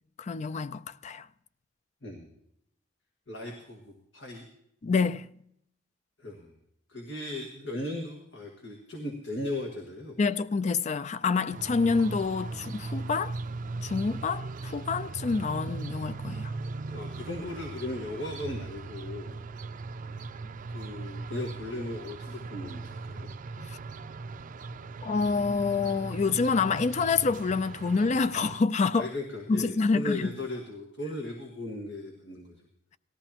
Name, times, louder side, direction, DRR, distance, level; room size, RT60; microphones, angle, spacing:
voice 1, 0.2-1.3 4.8-5.3 10.2-13.3 13.8-16.5 23.6-23.8 25.0-29.1 29.5-30.4, left 4 dB, 40° left, 0.4 m, -27 dB
voice 2, 3.3-4.4 6.2-6.5 6.9-10.2 16.9-19.4 20.7-23.3 28.9-32.6, left 1 dB, 90° left, 1.9 m, -37 dB
sound 1, 11.5-28.6, right 3 dB, 45° right, 0.5 m, -39 dB
18.5 x 13.5 x 2.9 m
head